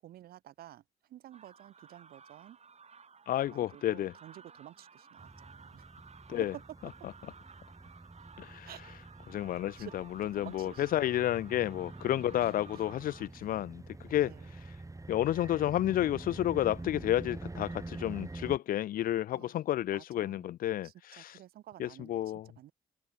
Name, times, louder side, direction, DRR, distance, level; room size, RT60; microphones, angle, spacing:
voice 1, 0.0-0.8 1.1-2.6 3.5-5.9 6.5-6.6 8.7-8.8 9.7-9.9 10.3-10.9 12.4-12.5 14.2-14.5 19.3-19.5 19.9-20.4 20.8-22.7, right 13 dB, 85° right, 2.3 m, -51 dB
sound 1, 1.3-13.3, right 5 dB, 45° right, 2.9 m, -56 dB
voice 2, 3.3-4.1 6.3-6.5 8.4-8.7 9.3-14.3 15.1-21.4 21.8-22.5, left 12 dB, 70° left, 0.4 m, -31 dB
sound 2, 5.2-18.6, right 2 dB, 20° right, 7.8 m, -46 dB
cardioid pair, 70°, 15 cm